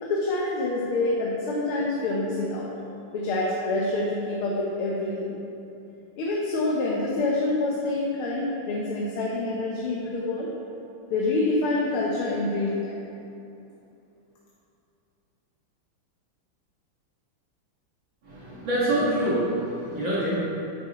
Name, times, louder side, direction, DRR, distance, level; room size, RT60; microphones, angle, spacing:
voice 1, 0.0-2.7 3.1-5.4 6.2-10.5 11.1-13.0, left 2 dB, 85° left, -4 dB, 1.9 m, -26 dB
voice 2, 18.2-20.4, right 1 dB, 65° right, -9 dB, 2.5 m, -26 dB
9.6 x 9.5 x 3.0 m, 2.7 s
omnidirectional pair, 2.3 m